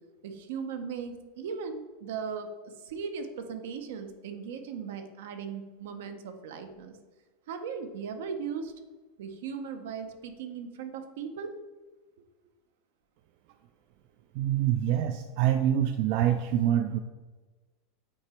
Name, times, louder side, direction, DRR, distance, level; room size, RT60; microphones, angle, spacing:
voice 1, 0.2-2.5 2.8-7.0 7.5-8.7 9.2-11.5, right 6 dB, 80° right, 7 dB, 0.8 m, -38 dB
voice 2, 14.3-17.0, right 11 dB, 55° right, 7 dB, 0.3 m, -25 dB
8.3 x 2.9 x 4.3 m, 1.3 s
supercardioid pair, 155°, 0 cm